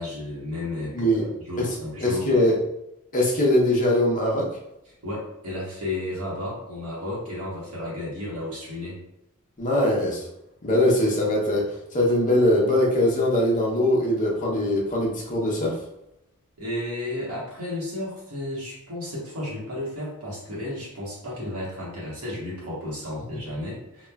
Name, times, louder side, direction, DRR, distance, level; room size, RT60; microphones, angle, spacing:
voice 1, 0.0-1.1 1.4-2.3 5.0-9.0 16.6-24.1, left 1 dB, 85° right, -6 dB, 1.0 m, -33 dB
voice 2, 0.9-1.3 1.6-1.7 2.0-2.6 3.1-4.5 9.6-10.2 10.6-11.6 11.9-15.7, left 1 dB, 35° left, -2 dB, 0.7 m, -21 dB
2.9 x 2.2 x 2.2 m, 0.84 s
head